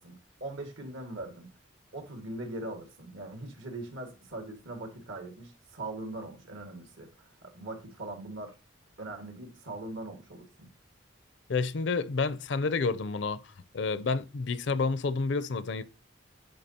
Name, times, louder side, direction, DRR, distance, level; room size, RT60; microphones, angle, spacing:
voice 1, 0.0-1.5 1.9-8.5 9.0-10.7, right 2 dB, 75° right, 1.9 m, -41 dB
voice 2, 11.5-13.4 13.7-15.8, left 4 dB, 60° left, 0.5 m, -29 dB
10.5 x 3.8 x 2.8 m
head